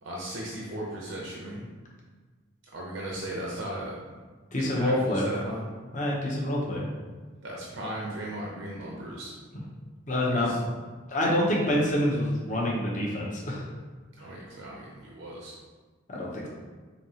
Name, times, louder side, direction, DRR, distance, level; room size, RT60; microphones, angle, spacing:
voice 1, 0.0-1.6 2.7-4.2 4.6-5.7 7.4-9.3 10.3-10.6 14.2-15.5, right 1 dB, 70° right, -3 dB, 0.6 m, -37 dB
voice 2, 4.5-5.2 5.9-6.9 10.1-10.5 11.1-13.6 16.1-16.5, left 1 dB, 40° left, -4 dB, 0.8 m, -26 dB
5.2 x 2.8 x 2.8 m, 1.4 s
head